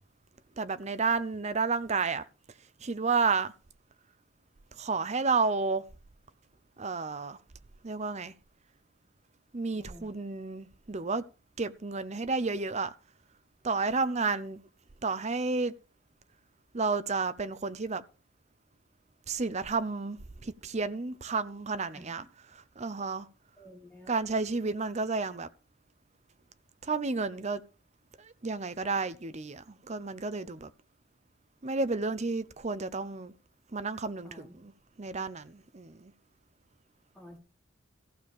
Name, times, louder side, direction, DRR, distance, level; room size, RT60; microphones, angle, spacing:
voice 1, 0.6-2.3 2.8-3.5 4.7-5.8 6.8-7.4 7.8-8.3 9.5-11.2 11.6-12.9 13.6-14.6 15.0-15.7 16.7-18.0 19.3-22.2 22.5-23.3 24.1-25.5 26.8-27.6 28.2-30.7 31.6-33.3 33.7-34.7 35.0-36.1, right 4 dB, 35° right, 0.7 m, -31 dB
voice 2, 21.9-22.3 23.6-24.1 34.2-34.6 37.1-37.4, equal, 5° left, 4.3 m, -51 dB
15.0 x 6.6 x 5.3 m
head